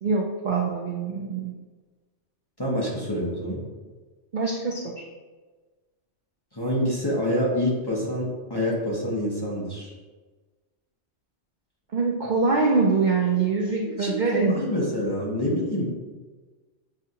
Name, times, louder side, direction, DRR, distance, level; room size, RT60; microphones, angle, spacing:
voice 1, 0.0-1.5 4.3-5.0 11.9-14.7, right 4 dB, 55° right, -1 dB, 0.5 m, -24 dB
voice 2, 2.6-3.6 6.5-9.9 13.3-13.4 13.8-15.9, equal, 20° left, -5 dB, 0.8 m, -27 dB
7.0 x 2.5 x 2.8 m, 1.3 s
omnidirectional pair, 1.3 m